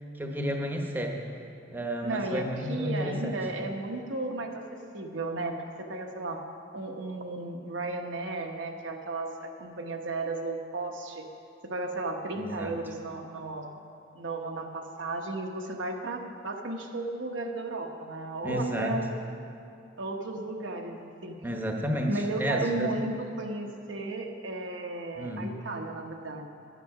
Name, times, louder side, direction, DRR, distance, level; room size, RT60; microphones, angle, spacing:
voice 1, 0.1-1.2 1.7-3.4 12.4-12.8 18.4-19.0 21.4-22.9 25.1-25.5, equal, 10° right, 1 dB, 1.0 m, -31 dB
voice 2, 2.0-4.6 4.9-6.4 6.7-11.3 11.6-13.7 14.1-19.1 20.0-21.4 22.1-26.5, right 2 dB, 70° right, 3 dB, 1.0 m, -34 dB
10.0 x 9.3 x 5.9 m, 2.6 s
head